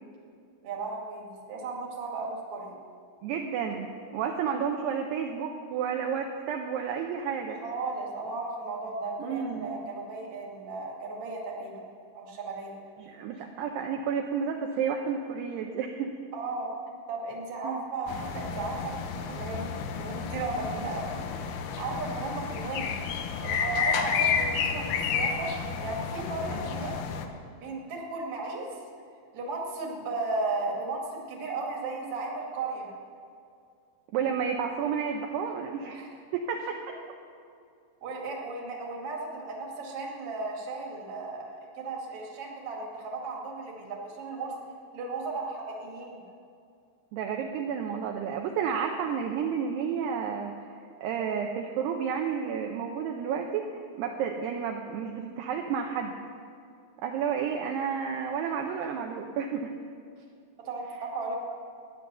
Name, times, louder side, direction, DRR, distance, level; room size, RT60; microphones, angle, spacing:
voice 1, 0.6-2.8 4.4-4.5 7.6-11.9 12.1-12.8 16.3-16.7 17.1-21.2 21.8-23.0 23.4-25.5 25.8-27.0 27.5-28.7 29.3-32.9 35.9-36.1 38.0-44.6 44.9-46.2 60.6-61.4, right 3 dB, 45° right, -1 dB, 2.2 m, -35 dB
voice 2, 3.2-7.6 9.2-9.7 13.0-16.2 17.6-17.8 34.1-36.0 36.3-36.8 47.1-50.5 51.0-56.1 57.0-59.7, right 7 dB, 80° right, 2 dB, 2.5 m, -31 dB
sound 1, 18.1-27.3, left 6 dB, 80° left, 2.2 m, -31 dB
13.0 x 9.9 x 6.9 m, 2.4 s
omnidirectional pair, 5.4 m